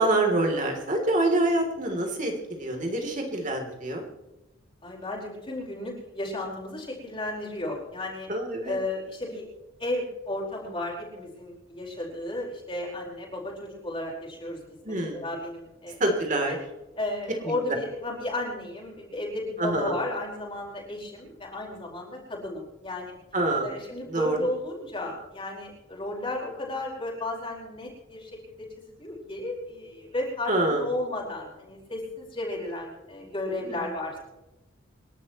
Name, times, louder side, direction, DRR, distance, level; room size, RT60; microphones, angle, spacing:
voice 1, 0.0-4.0 8.3-8.8 14.8-15.2 16.0-16.6 19.6-20.0 23.3-23.7 24.1-24.4 30.5-30.8 33.6-33.9, right 2 dB, 40° right, 2 dB, 3.2 m, -26 dB
voice 2, 4.8-8.3 8.6-9.4 9.8-14.6 14.8-16.1 16.5-16.6 17.0-23.1 23.6-34.2, left 2 dB, 25° left, -3 dB, 4.9 m, -34 dB
28.5 x 12.0 x 3.1 m, 1.0 s
head